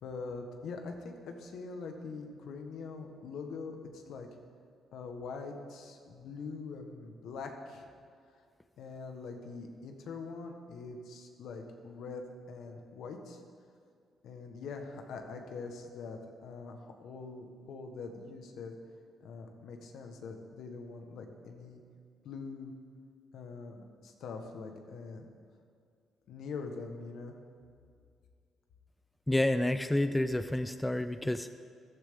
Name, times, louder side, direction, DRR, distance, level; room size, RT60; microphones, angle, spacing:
voice 1, 0.0-4.3 4.9-7.9 8.3-8.4 8.8-13.4 14.2-18.7 19.2-21.8 22.2-22.7 23.3-25.3 26.3-27.4, left 4 dB, 75° left, 4 dB, 1.4 m, -43 dB
voice 2, 29.3-31.5, left 1 dB, 10° left, 10 dB, 0.5 m, -29 dB
14.5 x 12.0 x 3.8 m, 2.2 s
cardioid pair, 90°, 0 cm